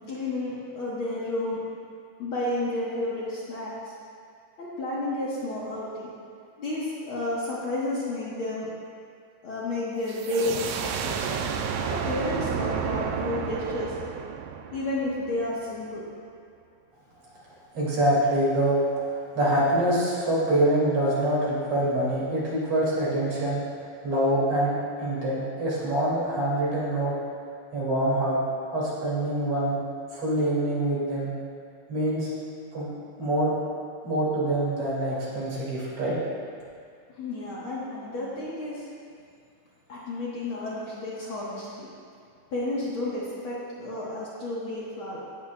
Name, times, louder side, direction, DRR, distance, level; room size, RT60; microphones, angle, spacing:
voice 1, 0.1-1.6 2.2-3.9 4.6-6.1 6.6-8.7 9.4-11.4 11.8-13.9 14.7-16.0 37.1-38.9 39.9-41.9 42.5-45.2, left 2 dB, 55° left, -7 dB, 1.8 m, -31 dB
sound 1, 10.1-15.6, right 7 dB, 80° right, 1.6 m, -31 dB
voice 2, 17.7-19.1 19.3-23.6 24.0-27.2 27.7-28.4 28.7-29.8 30.1-31.3 31.9-32.3 32.7-32.9 33.2-33.5 34.0-36.2, right 1 dB, 50° right, -8 dB, 3.4 m, -25 dB
17.0 x 8.4 x 2.3 m, 2.3 s
omnidirectional pair, 3.4 m